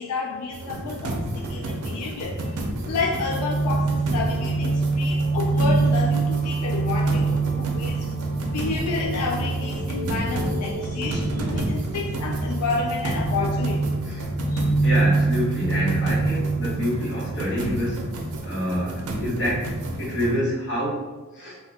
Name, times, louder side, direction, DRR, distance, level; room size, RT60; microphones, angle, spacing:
voice 1, 0.0-2.6 2.9-8.1 8.5-13.9 14.5-14.7, left 4 dB, 90° left, 0 dB, 0.3 m, -30 dB
sound 1, 0.5-20.4, right 1 dB, 80° right, 0.5 m, -31 dB
sound 2, 2.9-17.6, right 3 dB, 30° left, 1.4 m, -25 dB
voice 2, 14.8-18.1 18.4-21.1 21.3-21.6, equal, 55° left, -6 dB, 0.9 m, -27 dB
2.7 x 2.1 x 3.3 m, 1.2 s
head